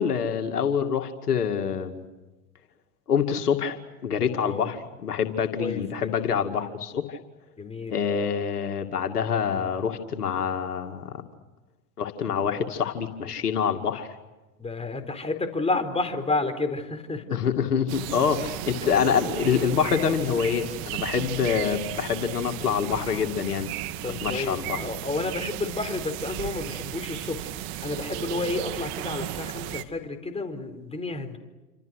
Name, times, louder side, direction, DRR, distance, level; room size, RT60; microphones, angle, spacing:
voice 1, 0.0-2.0 3.1-7.2 7.9-11.2 12.0-14.1 17.3-23.7 24.0-24.8, left 7 dB, 85° left, 6 dB, 2.5 m, -26 dB
voice 2, 5.6-6.1 7.6-8.0 14.6-17.4 24.0-31.4, left 3 dB, 15° left, 6 dB, 4.3 m, -31 dB
sound 1, 17.9-29.8, right 13 dB, 50° right, 2.3 m, -34 dB
29.0 x 26.5 x 6.5 m, 1.1 s
hypercardioid pair, 95°, 45 cm